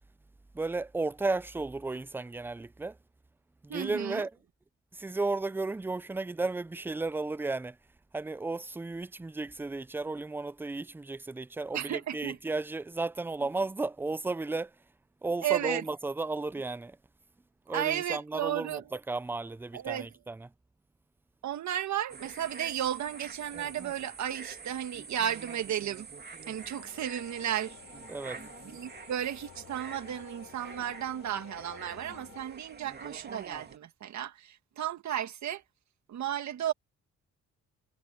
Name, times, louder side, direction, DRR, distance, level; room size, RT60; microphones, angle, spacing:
voice 1, 0.5-3.0 3.6-4.3 4.9-7.8 8.1-14.7 15.2-17.0 17.7-18.8 19.1-20.5 28.1-28.4, right 3 dB, 5° right, 0.4 m, -34 dB
voice 2, 3.7-4.3 11.7-12.4 15.4-15.9 17.7-18.9 19.7-20.1 21.4-26.1 26.5-27.8 28.6-35.6 36.1-36.7, right 10 dB, 65° right, 1.8 m, -34 dB
sound 1, 22.1-33.8, right 5 dB, 35° right, 2.5 m, -47 dB
sound 2, 26.8-32.5, left 12 dB, 80° left, 3.6 m, -52 dB
cardioid pair, 90°, 30 cm